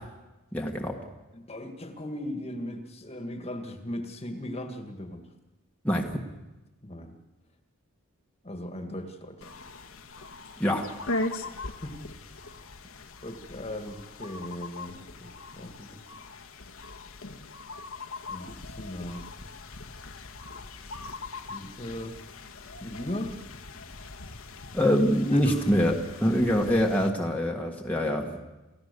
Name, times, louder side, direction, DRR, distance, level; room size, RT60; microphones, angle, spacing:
voice 1, 0.5-1.0 5.8-6.1 10.6-10.9 24.7-28.4, equal, 5° left, -1 dB, 1.6 m, -24 dB
voice 2, 1.3-5.3 6.8-7.2 8.4-9.5 11.8-12.4 13.2-16.0 18.3-19.3 21.5-22.2 22.8-23.4 25.3-25.6, left 1 dB, 30° left, 6 dB, 1.8 m, -38 dB
sound 1, 9.4-27.1, left 2 dB, 75° left, 1.5 m, -40 dB
28.5 x 15.5 x 6.8 m, 1.1 s
head